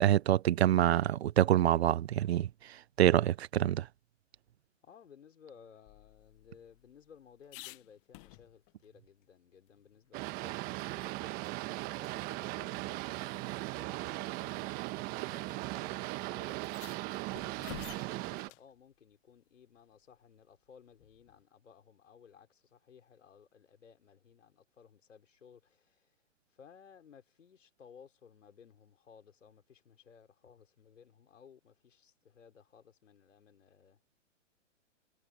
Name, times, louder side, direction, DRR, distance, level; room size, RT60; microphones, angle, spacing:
voice 1, 0.0-3.9, right 12 dB, 55° right, 0.7 m, -26 dB
voice 2, 4.8-26.2 26.5-34.0, left 7 dB, 75° left, 5.2 m, -59 dB
sound 1, 5.9-8.8 9.2-9.3 9.7-11.1 11.4-11.6 12.0-12.1 13.2-13.3 14.2-14.5 15.5-15.6 15.8-15.9 16.5-18.7 21.0-21.4, left 25 dB, 25° left, 1.0 m, -52 dB
Boat Water vehicle, 10.1-18.5, right 21 dB, 25° right, 1.2 m, -38 dB
hypercardioid pair, 140°, 38 cm